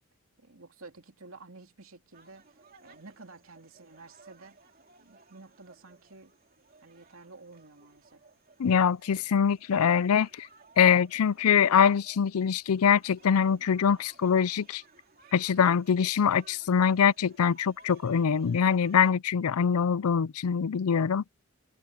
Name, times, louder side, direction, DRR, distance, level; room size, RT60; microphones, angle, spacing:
voice 1, 0.4-4.6 5.0-6.3 6.8-8.2, right 3 dB, 70° right, 2.8 m, -51 dB
sound 1, 2.1-19.1, right 4 dB, 40° right, 2.8 m, -58 dB
voice 2, 8.6-10.5 10.8-14.8 15.3-21.2, left 7 dB, 90° left, 0.5 m, -24 dB
head